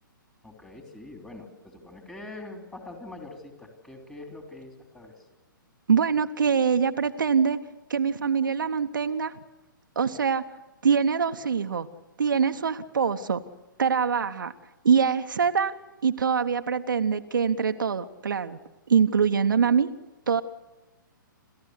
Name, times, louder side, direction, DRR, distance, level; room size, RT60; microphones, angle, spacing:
voice 1, 0.4-5.3, left 2 dB, 5° left, 3 dB, 3.3 m, -44 dB
voice 2, 5.9-7.6 7.9-9.3 10.0-10.4 10.8-11.9 12.2-13.4 13.8-14.5 14.8-15.7 16.0-18.6 18.9-19.9 20.3-20.4, right 6 dB, 65° right, 7 dB, 1.0 m, -24 dB
28.5 x 14.0 x 8.1 m, 1.1 s
figure-of-eight pair, 120°, 11 cm